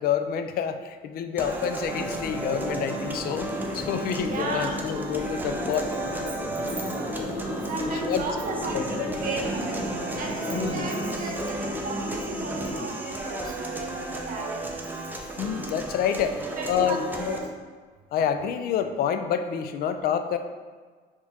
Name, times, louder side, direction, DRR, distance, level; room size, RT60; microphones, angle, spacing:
voice 1, 0.0-6.0 6.3-6.4 7.2-7.3 7.8-8.2 8.7-9.1 10.5-10.9 15.4-16.4 16.7-17.4 18.1-20.4, left 8 dB, 65° left, 8 dB, 0.4 m, -28 dB
sound 1, 1.4-17.4, right 2 dB, 10° right, 0.6 m, -34 dB
sound 2, 1.8-12.9, left 1 dB, 35° left, 1.0 m, -34 dB
voice 2, 4.2-4.9 7.6-9.8 10.1-14.7 16.1-17.0 17.3-17.5, right 2 dB, 55° right, 0 dB, 1.0 m, -34 dB
4.3 x 3.0 x 3.5 m, 1.5 s
cardioid pair, 110°, 17 cm